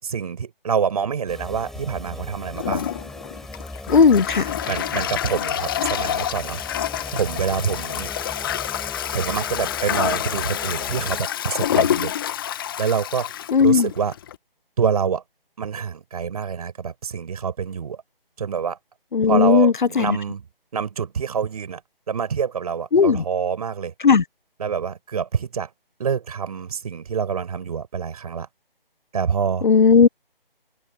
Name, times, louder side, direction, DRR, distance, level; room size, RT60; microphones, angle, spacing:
voice 1, 0.0-2.9 4.7-6.6 7.1-8.1 9.1-12.1 12.8-13.3 13.6-14.1 14.8-15.2 15.6-18.0 18.4-18.8 19.3-20.4 20.7-21.8 22.1-23.9 24.6-25.7 26.0-28.5 29.1-29.7, right 7 dB, 40° right, 6.6 m, -26 dB
sound 1, 1.3-11.2, left 1 dB, ahead, 5.0 m, -38 dB
Toilet flush, 2.6-14.4, left 11 dB, 25° left, 1.9 m, -27 dB
voice 2, 3.9-4.5 13.5-13.9 19.1-20.2 22.9-23.2 24.0-24.2 29.6-30.1, left 5 dB, 55° left, 0.9 m, -16 dB
figure-of-eight pair, 160°, 29 cm